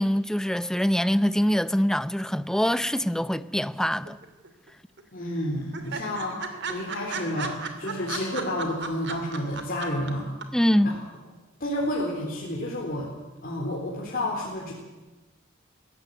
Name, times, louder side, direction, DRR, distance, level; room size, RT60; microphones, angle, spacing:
voice 1, 0.0-4.2 10.5-11.0, equal, 5° left, 0.7 m, -24 dB
sound 1, 4.0-4.7 5.0-5.1 5.3-5.4 5.7-10.1 10.4-10.5, right 5 dB, 60° right, 2.7 m, -34 dB
voice 2, 5.1-10.3 10.8-10.9 11.6-13.1 13.4-14.7, left 1 dB, 45° left, 4.0 m, -30 dB
21.5 x 16.5 x 9.5 m
head